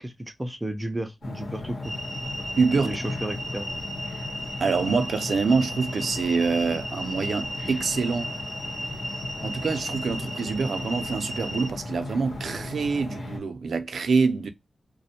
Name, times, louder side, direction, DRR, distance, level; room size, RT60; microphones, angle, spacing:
voice 1, 0.0-1.9 2.8-3.7, right 1 dB, 10° right, 0.4 m, -33 dB
sound 1, 1.2-13.4, left 2 dB, 85° left, 1.0 m, -37 dB
sound 2, 1.8-11.7, right 1 dB, 15° left, 0.9 m, -36 dB
voice 2, 2.6-3.0 4.6-8.3 9.4-14.5, right 4 dB, 80° right, 0.4 m, -25 dB
2.5 x 2.1 x 2.7 m
wide cardioid pair, 170°, 0 cm